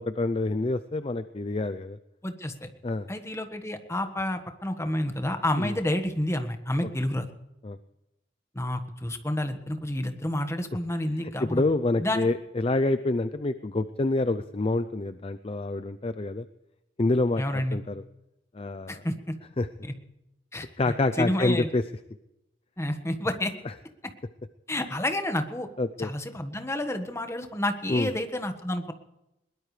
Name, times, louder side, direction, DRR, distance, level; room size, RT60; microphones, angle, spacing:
voice 1, 0.0-2.0 2.8-3.1 5.6-5.7 7.6-7.8 11.4-16.4 17.0-18.0 18.5-19.0 19.6-19.7 20.8-21.8 23.7-23.8 25.8-26.1 27.9-28.1, left 2 dB, 30° left, 11 dB, 0.5 m, -27 dB
voice 2, 2.2-2.7 3.1-7.3 8.5-11.7 12.0-12.3 17.4-17.8 18.9-19.3 19.8-19.9 20.5-21.7 22.8-23.5 24.7-25.7 26.0-28.9, left 1 dB, 15° left, 6 dB, 1.5 m, -30 dB
21.5 x 20.0 x 3.3 m, 0.91 s
head